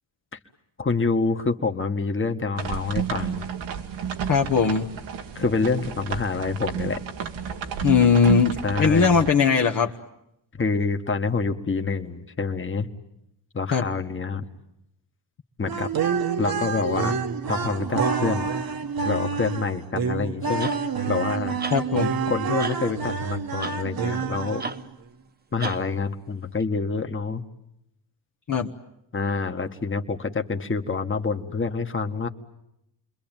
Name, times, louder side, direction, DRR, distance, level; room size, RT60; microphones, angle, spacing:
voice 1, 0.8-3.5 5.4-7.0 8.6-9.2 10.6-12.9 13.5-14.4 15.6-16.1 16.4-17.2 17.5-18.5 19.0-20.7 21.1-21.5 22.3-24.6 25.5-27.4 29.1-32.3, left 4 dB, 25° left, 6 dB, 1.8 m, -27 dB
sound 1, 2.6-9.3, right 8 dB, 80° right, 2.1 m, -31 dB
voice 2, 4.3-4.9 7.8-9.9 13.7-13.8 21.7-22.2 28.5-28.7, left 6 dB, 45° left, 1 dB, 1.4 m, -20 dB
sound 2, 15.6-24.9, right 5 dB, 50° right, 1.6 m, -28 dB
sound 3, 20.6-20.9 21.6-21.8 22.6-22.8 23.6-23.8 24.6-24.8 25.6-25.8 26.6-26.7, right 4 dB, 20° right, 1.1 m, -33 dB
29.0 x 22.0 x 9.1 m, 0.81 s
cardioid pair, 75°, 45 cm